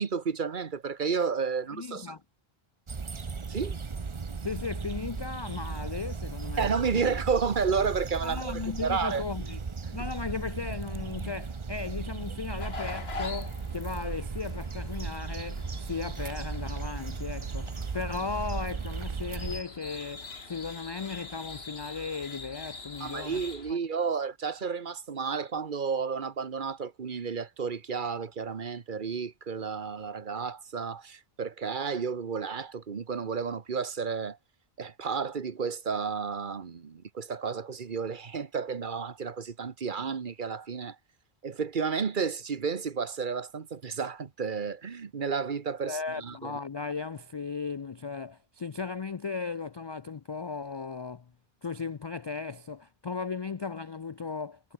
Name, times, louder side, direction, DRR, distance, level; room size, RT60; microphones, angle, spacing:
voice 1, 0.0-2.1 3.5-3.8 6.6-9.2 23.0-34.4 34.8-41.0 41.4-46.6, right 5 dB, 55° right, 1.2 m, -31 dB
voice 2, 1.7-2.2 4.4-6.7 6.9-7.1 8.2-9.6 9.9-23.4 45.8-51.3 51.6-54.7, left 5 dB, 45° left, 0.3 m, -36 dB
sound 1, 2.9-19.6, right 5 dB, 30° right, 0.8 m, -36 dB
sound 2, 12.6-23.7, left 4 dB, 80° left, 2.4 m, -44 dB
omnidirectional pair, 1.0 m